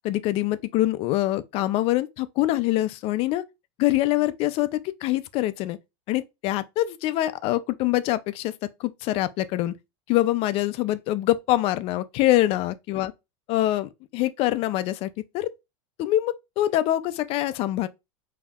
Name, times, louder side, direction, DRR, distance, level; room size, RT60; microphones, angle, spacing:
voice 1, 0.0-3.4 3.8-5.8 6.1-9.7 10.1-13.1 13.5-15.5 16.0-17.9, left 15 dB, 40° left, 0.4 m, -24 dB
5.3 x 2.7 x 2.3 m
supercardioid pair, 145°, 16 cm